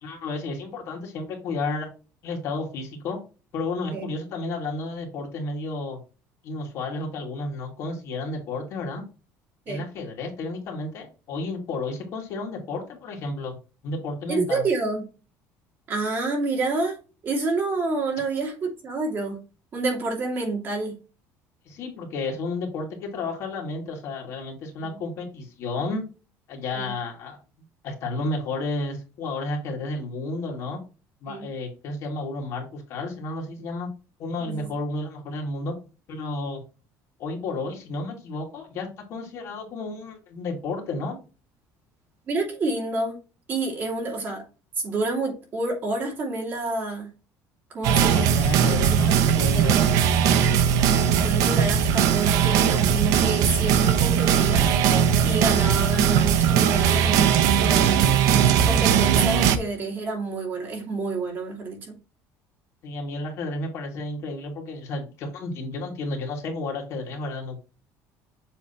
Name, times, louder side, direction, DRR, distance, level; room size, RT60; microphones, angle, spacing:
voice 1, 0.0-1.9 2.2-3.2 3.5-6.0 6.4-9.0 9.7-13.6 13.8-14.7 21.7-26.1 26.5-27.4 27.8-30.8 31.2-33.9 34.2-35.7 36.1-36.6 37.2-41.2 48.1-49.9 62.8-67.6, left 2 dB, 45° left, 2.0 m, -32 dB
voice 2, 14.3-15.0 15.9-19.4 19.7-20.9 24.8-25.0 26.7-26.9 31.3-31.5 34.4-34.7 42.3-43.2 43.5-44.5 44.8-47.1 47.7-48.4 48.9-50.4 51.2-54.7 55.2-58.0 58.3-62.0, right 3 dB, 30° right, 2.4 m, -28 dB
sound 1, 47.8-59.6, right 8 dB, 65° right, 0.8 m, -19 dB
7.3 x 3.4 x 4.2 m
cardioid pair, 180°, 7 cm